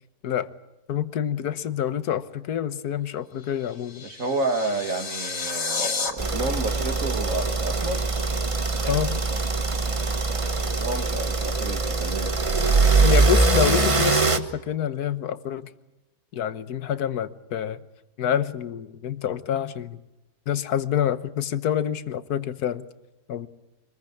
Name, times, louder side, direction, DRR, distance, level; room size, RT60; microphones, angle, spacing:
voice 1, 0.9-4.1 8.9-9.2 13.0-15.7 16.3-17.8 18.2-20.0 20.5-22.8 23.3-23.5, left 9 dB, 70° left, 14 dB, 1.6 m, -27 dB
sound 1, 3.4-6.1, left 4 dB, 90° left, 2.9 m, -31 dB
voice 2, 4.0-8.0 10.6-12.3, right 2 dB, 50° right, 7 dB, 2.7 m, -30 dB
sound 2, 6.2-14.4, right 3 dB, 20° right, 1.1 m, -22 dB
25.5 x 21.0 x 8.5 m, 0.97 s
omnidirectional pair, 1.7 m